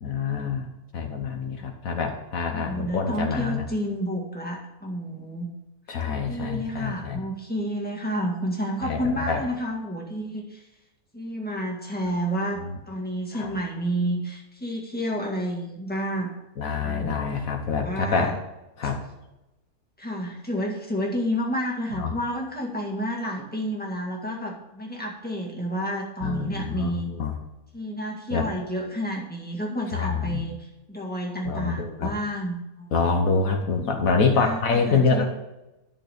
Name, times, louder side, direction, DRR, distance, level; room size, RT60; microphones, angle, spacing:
voice 1, 0.0-0.7 0.9-3.7 5.9-7.2 8.8-9.4 12.6-12.8 13.3-13.5 16.6-18.3 18.8-19.0 21.9-22.1 26.2-27.3 28.3-28.5 29.9-30.4 31.4-32.1 32.9-35.2, left 5 dB, 70° left, 4 dB, 1.5 m, -26 dB
voice 2, 2.5-5.5 5.9-10.6 11.1-16.3 16.8-17.2 17.7-18.4 20.0-27.1 27.7-32.9 34.3-34.6 34.9-35.3, equal, 5° left, -1 dB, 2.0 m, -30 dB
11.0 x 6.6 x 5.1 m, 0.97 s
omnidirectional pair, 1.5 m